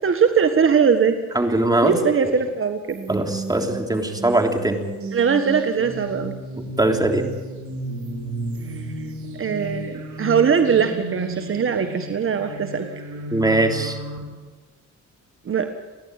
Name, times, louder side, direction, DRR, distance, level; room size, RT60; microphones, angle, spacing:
voice 1, 0.0-1.2 1.5-3.0 5.1-6.3 8.6-9.0 9.4-12.9 15.4-15.7, right 6 dB, 45° right, 7 dB, 1.5 m, -21 dB
voice 2, 1.3-1.9 3.1-4.8 6.8-7.2 13.3-14.0, right 2 dB, 15° right, 4 dB, 3.3 m, -20 dB
sound 1, 2.9-14.2, right 1 dB, 70° right, 4.8 m, -33 dB
30.0 x 11.0 x 9.0 m, 1.3 s
cardioid pair, 90°, 30 cm